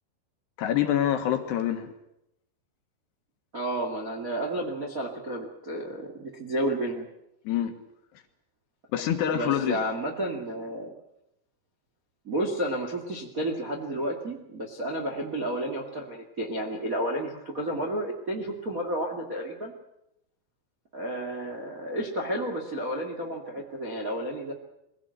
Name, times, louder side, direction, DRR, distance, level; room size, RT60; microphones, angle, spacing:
voice 1, 0.6-1.9 7.5-7.7 8.9-9.8, left 10 dB, 70° left, 6 dB, 3.1 m, -26 dB
voice 2, 3.5-7.1 9.3-10.9 12.2-19.7 20.9-24.5, right 1 dB, 55° right, 2 dB, 0.9 m, -31 dB
23.0 x 16.5 x 9.1 m, 0.83 s
omnidirectional pair, 5.7 m